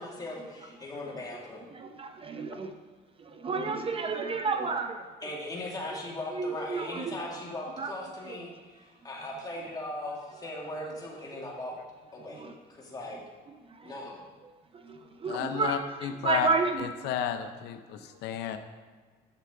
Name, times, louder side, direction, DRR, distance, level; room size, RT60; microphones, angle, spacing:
voice 1, 0.0-1.7 5.2-11.8 12.1-12.5 12.8-13.2 13.8-14.2, left 1 dB, 20° left, -2 dB, 2.1 m, -39 dB
voice 2, 1.7-2.7 3.2-5.0 6.3-7.2 7.8-7.9 8.3-8.4 12.3-12.5 13.8-13.9 14.7-16.9, right 4 dB, 35° right, 6 dB, 0.7 m, -31 dB
voice 3, 15.3-16.5 16.8-18.6, left 9 dB, 85° left, 8 dB, 0.6 m, -32 dB
9.8 x 6.8 x 3.7 m, 1.5 s
cardioid pair, 110°, 17 cm